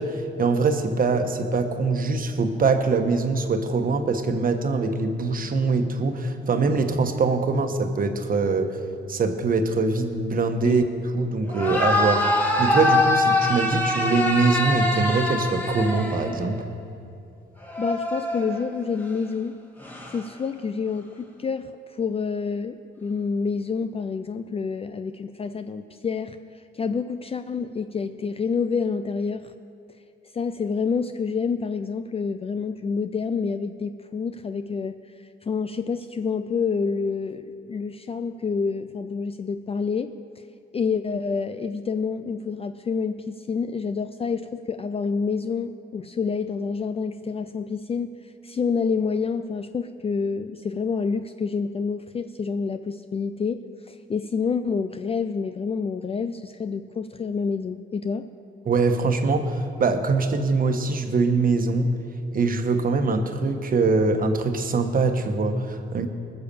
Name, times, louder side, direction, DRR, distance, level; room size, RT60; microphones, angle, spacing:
voice 1, 0.0-8.8 9.1-10.8 11.1-16.7 58.6-61.9 62.3-66.1, right 3 dB, 45° right, 6 dB, 1.3 m, -23 dB
sound 1, 11.5-16.6 17.6-18.9 19.8-20.2, left 1 dB, 10° left, 2.0 m, -24 dB
voice 2, 17.8-19.6 20.1-29.5 30.3-40.1 40.7-58.3, left 5 dB, 30° left, 10 dB, 0.5 m, -28 dB
20.0 x 6.8 x 6.9 m, 2.5 s
cardioid pair, 90°, 20 cm